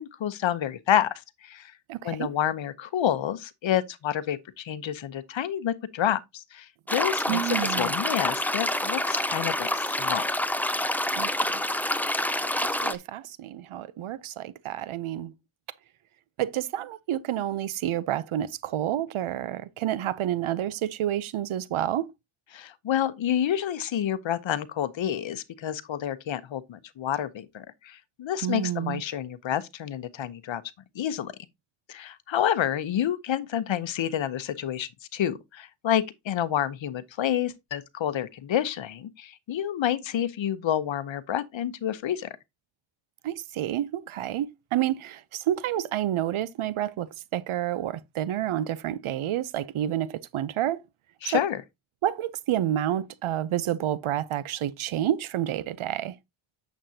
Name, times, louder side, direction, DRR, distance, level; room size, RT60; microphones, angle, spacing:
voice 1, 0.0-1.7 2.0-7.4 7.7-10.2 22.5-30.6 30.9-31.3 31.9-42.3 51.2-51.6, left 10 dB, 65° left, 0.9 m, -29 dB
voice 2, 1.9-2.3 7.3-7.9 11.1-11.6 12.7-15.3 16.4-22.1 28.4-29.0 43.2-50.8 51.2-51.4 52.0-56.2, right 12 dB, 75° right, 0.7 m, -29 dB
sound 1, 6.9-13.0, left 1 dB, 5° left, 0.7 m, -27 dB
8.9 x 7.2 x 2.8 m
cardioid pair, 80°, 49 cm